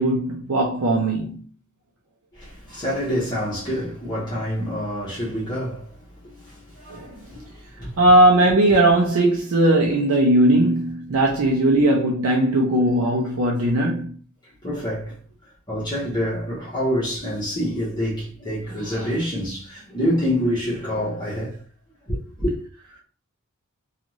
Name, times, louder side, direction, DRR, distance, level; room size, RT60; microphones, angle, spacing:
voice 1, 0.0-1.4 6.9-7.1 8.0-14.1, right 1 dB, 75° right, 0.5 m, -18 dB
voice 2, 2.3-8.0 8.7-8.8 13.7-13.8 14.4-15.1 15.7-21.6 22.0-22.6, equal, 20° left, 0.8 m, -27 dB
2.5 x 2.4 x 3.0 m
head